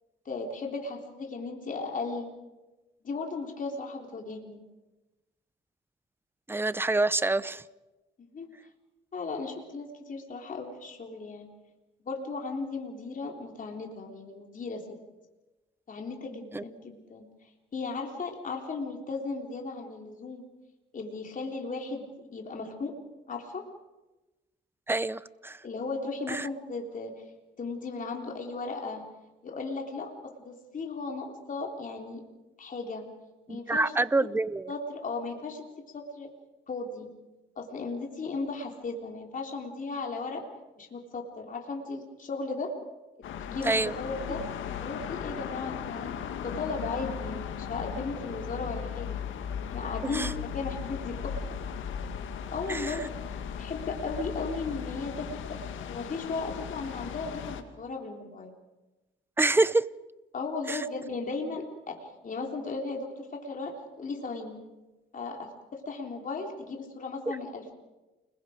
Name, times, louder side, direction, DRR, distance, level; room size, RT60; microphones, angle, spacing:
voice 1, 0.3-2.3 3.0-4.6 8.2-8.5 9.1-11.5 12.1-14.9 15.9-17.3 17.7-20.5 20.9-23.0 23.3-23.6 25.6-27.2 27.6-29.1 29.4-32.2 32.6-33.1 33.5-33.9 34.7-35.6 35.9-36.3 36.7-37.1 37.6-40.5 40.8-42.8 43.4-44.5 44.7-46.1 46.4-49.2 49.7-51.4 52.5-53.2 53.6-58.5 60.3-64.6 65.1-67.7, left 3 dB, 40° left, 1 dB, 3.6 m, -36 dB
voice 2, 6.5-7.6 16.5-16.6 24.9-25.6 26.3-26.5 33.5-34.7 43.6-43.9 50.0-50.3 52.7-52.9 59.4-59.8 60.7-60.8 67.3-67.4, right 2 dB, 10° right, 17 dB, 0.7 m, -27 dB
sound 1, 43.2-57.6, left 8 dB, 80° left, 1.9 m, -37 dB
29.0 x 21.5 x 5.2 m, 1.1 s
cardioid pair, 90°, 20 cm